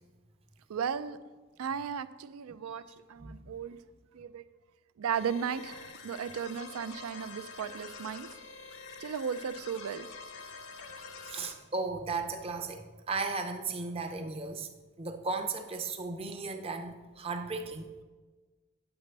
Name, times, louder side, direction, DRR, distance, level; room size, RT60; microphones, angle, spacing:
voice 1, 0.7-1.2 1.6-3.8 4.1-4.4 5.0-8.3 9.0-10.1, right 7 dB, 70° right, 14 dB, 0.4 m, -35 dB
sound 1, 5.1-11.5, left 4 dB, 60° left, 0.8 m, -46 dB
voice 2, 11.3-14.7 15.0-17.9, right 3 dB, 25° right, 6 dB, 0.6 m, -35 dB
8.9 x 7.9 x 3.3 m, 1.3 s
head